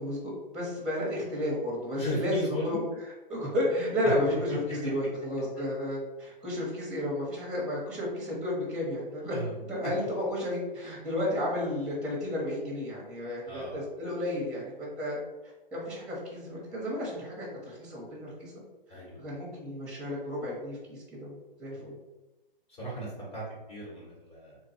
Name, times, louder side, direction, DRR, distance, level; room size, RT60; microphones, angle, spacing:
voice 1, 0.0-2.8 3.3-9.4 9.6-15.2 15.7-18.6 18.9-21.9, left 1 dB, 5° right, -4 dB, 0.8 m, -32 dB
voice 2, 2.0-2.8 4.0-4.1 4.5-4.6 9.3-9.6 13.5-13.8 18.9-19.2 21.7-21.9 22.7-24.6, equal, 25° left, -6 dB, 1.0 m, -36 dB
3.5 x 2.2 x 4.1 m, 1.1 s
hypercardioid pair, 140°, 29 cm